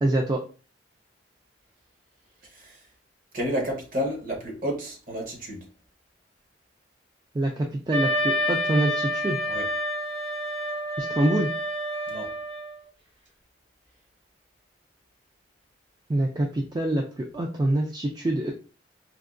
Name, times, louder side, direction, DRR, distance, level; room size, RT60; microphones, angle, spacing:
voice 1, 0.0-0.4 7.3-9.4 11.0-11.5 16.1-18.5, right 1 dB, 20° right, 0.3 m, -25 dB
voice 2, 2.4-2.8 3.3-5.7 9.5-9.7 12.1-12.3, equal, 45° right, 1.0 m, -31 dB
Wind instrument woodwind instrument, 7.9-12.8, equal, 70° right, 1.5 m, -28 dB
4.5 x 2.2 x 2.4 m
head